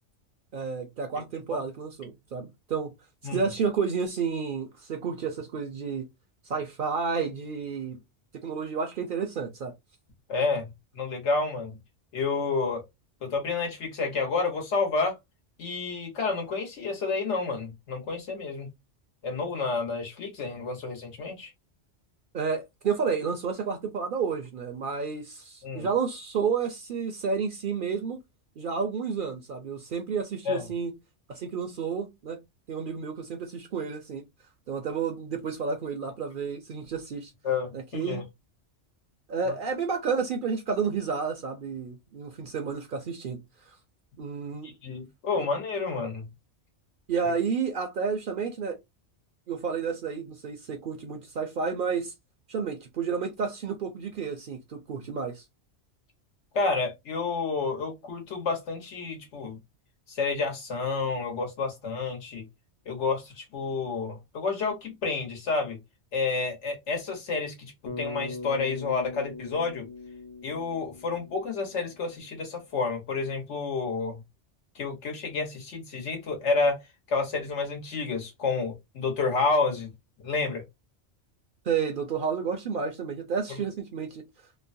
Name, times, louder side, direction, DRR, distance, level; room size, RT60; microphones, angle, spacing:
voice 1, 0.5-2.9 3.2-6.1 6.4-8.0 8.3-9.7 22.3-28.2 28.6-30.9 31.3-32.4 32.7-34.2 34.7-37.3 37.7-38.2 39.3-43.8 44.2-44.7 45.4-45.5 47.1-48.8 49.5-52.1 52.5-55.5 81.6-84.3, right 5 dB, 60° right, 0.6 m, -31 dB
voice 2, 10.3-10.7 10.9-11.8 12.1-12.8 13.2-15.2 15.6-18.7 19.2-21.5 25.6-25.9 30.5-30.6 37.4-38.2 44.8-46.3 56.5-59.6 60.1-62.4 62.9-65.8 66.1-67.7 68.0-69.9 70.4-74.2 74.7-76.8 77.1-79.9 80.2-80.6, left 4 dB, 80° left, 1.3 m, -29 dB
Bass guitar, 67.9-72.2, left 3 dB, 40° left, 0.3 m, -41 dB
3.0 x 2.1 x 2.5 m
omnidirectional pair, 1.2 m